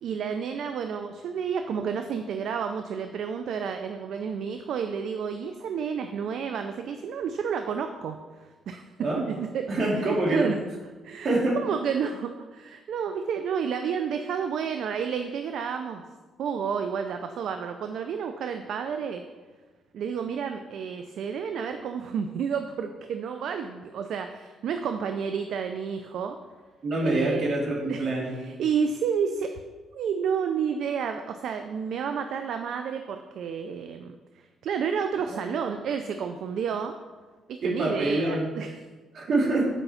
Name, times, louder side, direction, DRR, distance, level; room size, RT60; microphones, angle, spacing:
voice 1, 0.0-8.2 8.7-8.8 9.2-9.7 10.0-10.6 11.0-16.0 16.4-19.2 19.9-26.4 27.0-27.6 27.9-28.1 28.3-29.5 29.9-34.2 34.6-36.9 37.5-38.7, right 7 dB, 70° right, 7 dB, 0.5 m, -30 dB
voice 2, 9.7-10.5 11.2-11.6 26.8-28.4 35.3-35.7 37.6-38.5 39.1-39.7, right 2 dB, 55° right, -1 dB, 2.3 m, -26 dB
8.1 x 5.3 x 5.7 m, 1.3 s
cardioid pair, 90°, 0 cm